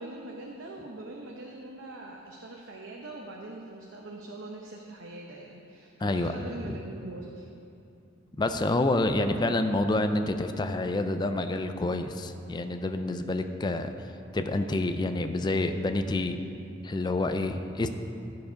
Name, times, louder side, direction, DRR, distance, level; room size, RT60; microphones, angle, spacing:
voice 1, 0.0-7.5, right 2 dB, 85° right, -1 dB, 0.8 m, -42 dB
voice 2, 6.0-6.5 8.4-13.9 14.3-16.4 16.8-17.9, left 2 dB, 25° left, 8 dB, 0.4 m, -28 dB
13.0 x 4.8 x 5.1 m, 2.7 s
head